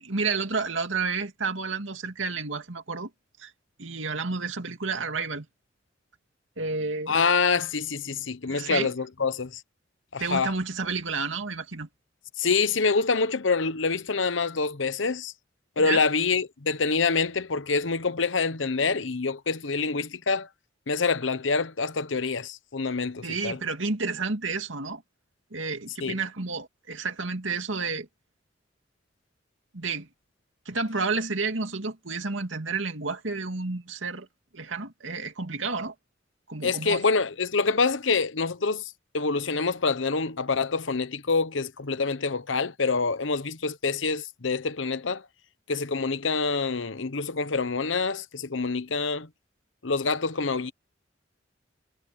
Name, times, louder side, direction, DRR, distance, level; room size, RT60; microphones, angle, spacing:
voice 1, 0.0-3.1 3.4-3.5 3.8-5.5 6.6-7.1 8.5-8.9 10.2-11.9 15.8-16.0 23.2-25.0 25.5-28.1 29.7-30.1 30.7-34.3 34.5-35.9 36.5-37.0, right 4 dB, 90° right, 2.4 m, -30 dB
voice 2, 7.1-9.6 10.1-10.5 12.4-15.3 15.8-20.5 20.9-23.6 26.0-26.2 36.6-45.2 45.7-49.3 49.8-50.7, left 4 dB, 80° left, 1.0 m, -26 dB
head